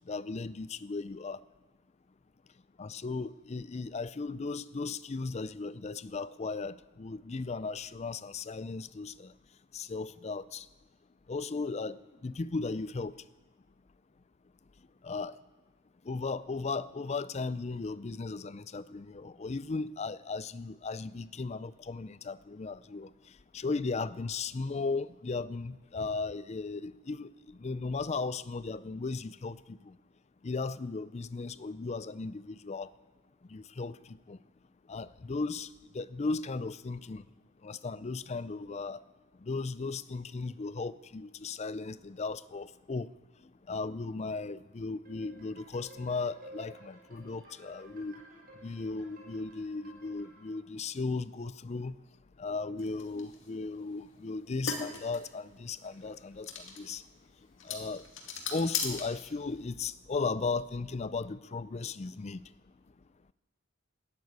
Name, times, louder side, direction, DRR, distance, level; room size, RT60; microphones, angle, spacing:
voice 1, 0.1-1.4 2.8-9.3 9.7-10.7 11.3-12.0 12.2-13.1 15.0-15.3 16.1-23.1 23.5-27.3 27.6-29.9 30.4-32.9 33.5-34.4 34.9-35.7 35.9-37.2 37.6-39.0 39.4-43.1 43.7-48.1 48.6-52.0 52.4-56.5 56.8-57.0 57.7-58.0 58.5-62.4, left 3 dB, 30° left, 17 dB, 0.4 m, -36 dB
sound 1, 45.0-50.5, right 1 dB, 45° right, 5.7 m, -54 dB
sound 2, 52.8-59.7, left 5 dB, 60° left, 2.4 m, -40 dB
13.5 x 10.5 x 9.5 m, 1.3 s
head